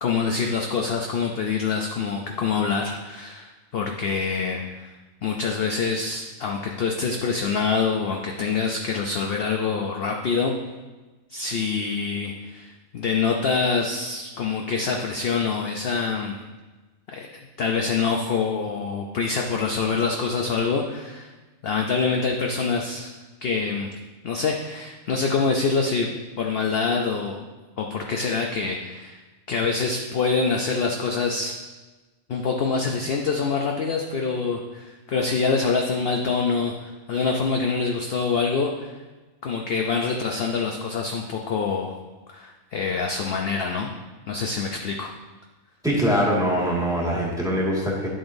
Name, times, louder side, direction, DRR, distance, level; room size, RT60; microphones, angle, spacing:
voice 1, 0.0-4.9 5.2-10.5 11.3-16.4 17.1-17.3 17.6-21.3 21.6-23.1 23.4-23.9 24.2-26.1 26.4-27.4 27.8-29.2 29.5-31.5 32.3-39.0 39.4-41.9 42.3-43.9 44.3-45.1, left 5 dB, 55° left, 1 dB, 0.7 m, -25 dB
voice 2, 45.8-48.1, equal, 5° right, -4 dB, 1.7 m, -23 dB
9.7 x 7.6 x 2.6 m, 1.2 s
omnidirectional pair, 1.5 m